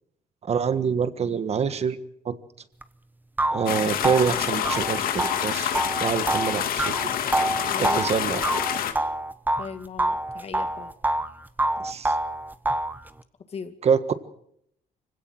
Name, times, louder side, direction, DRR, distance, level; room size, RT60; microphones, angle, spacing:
voice 1, 0.4-2.0 2.2-2.4 3.5-6.9 7.8-8.4 11.8-12.1 13.8-14.0, right 6 dB, 45° right, 13 dB, 1.5 m, -26 dB
sound 1, 2.8-2.9 3.4-9.7 10.0-11.3 11.6-13.0, right 1 dB, 10° right, 1.0 m, -26 dB
sound 2, 3.7-8.9, left 9 dB, 75° left, 2.1 m, -27 dB
voice 2, 7.7-8.1 9.6-10.9 13.5-13.7, left 6 dB, 45° left, 8 dB, 2.1 m, -37 dB
25.0 x 16.5 x 7.8 m, 0.72 s
cardioid pair, 120°, 15 cm